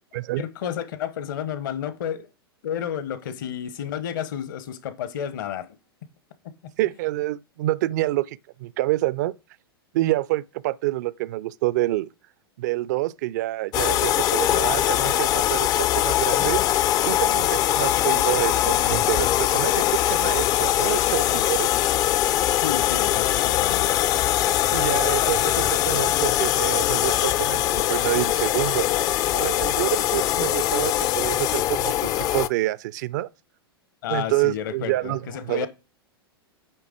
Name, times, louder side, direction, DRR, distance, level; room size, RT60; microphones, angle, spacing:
voice 1, 0.4-2.3 2.6-5.7 22.6-23.9 25.2-25.3 34.0-35.7, left 9 dB, 55° left, 0.9 m, -31 dB
voice 2, 6.8-9.3 9.9-12.1 12.6-21.7 24.7-29.0 29.3-33.3 34.1-35.7, right 17 dB, 45° right, 0.4 m, -27 dB
sound 1, 13.7-32.5, left 13 dB, 30° left, 0.4 m, -22 dB
9.0 x 3.4 x 4.9 m
figure-of-eight pair, 95°, 13 cm